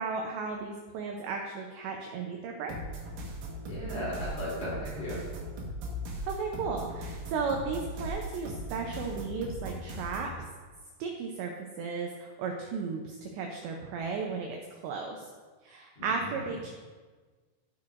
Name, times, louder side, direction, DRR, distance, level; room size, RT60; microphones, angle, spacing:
voice 1, 0.0-2.7 6.2-10.3 11.0-15.3 15.6-16.7, right 5 dB, 90° right, 2 dB, 2.5 m, -35 dB
sound 1, 2.7-10.3, right 1 dB, 70° right, 2.1 m, -39 dB
voice 2, 3.7-5.2 15.9-16.4, equal, 40° left, -8 dB, 3.4 m, -36 dB
17.0 x 5.8 x 2.5 m, 1.4 s
omnidirectional pair, 5.9 m